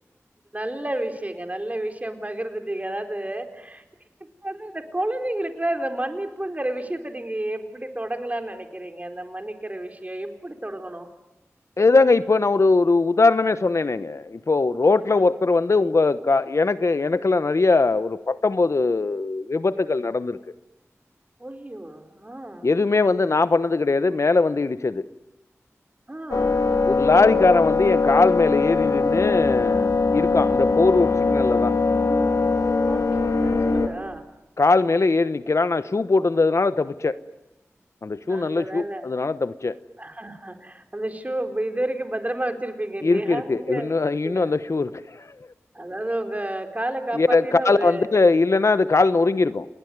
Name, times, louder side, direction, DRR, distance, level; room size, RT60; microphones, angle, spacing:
voice 1, 0.5-3.8 4.4-11.1 15.1-15.2 21.4-22.7 26.1-26.7 27.1-27.5 32.9-34.3 38.2-39.1 40.0-43.9 44.2-44.5 45.7-48.1, right 1 dB, 30° right, 6 dB, 4.3 m, -31 dB
voice 2, 11.8-20.4 22.6-25.0 26.9-31.8 34.6-37.2 38.0-39.7 43.0-45.2 47.1-49.7, left 3 dB, 65° left, 14 dB, 1.0 m, -20 dB
sound 1, 26.3-33.9, left 4 dB, 85° left, 2.8 m, -21 dB
29.0 x 19.5 x 9.6 m, 1.0 s
cardioid pair, 40°, 5 cm